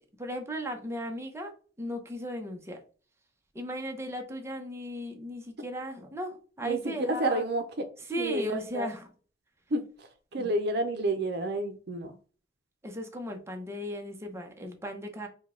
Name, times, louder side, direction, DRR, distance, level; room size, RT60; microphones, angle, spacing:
voice 1, 0.2-1.5 1.8-2.8 3.5-7.4 8.1-9.1 10.4-10.5 12.8-15.3, equal, 15° right, 3 dB, 0.8 m, -36 dB
voice 2, 6.6-7.9 8.2-8.9 9.7-12.2, right 2 dB, 65° right, 7 dB, 0.7 m, -30 dB
5.2 x 2.3 x 3.7 m, 0.39 s
head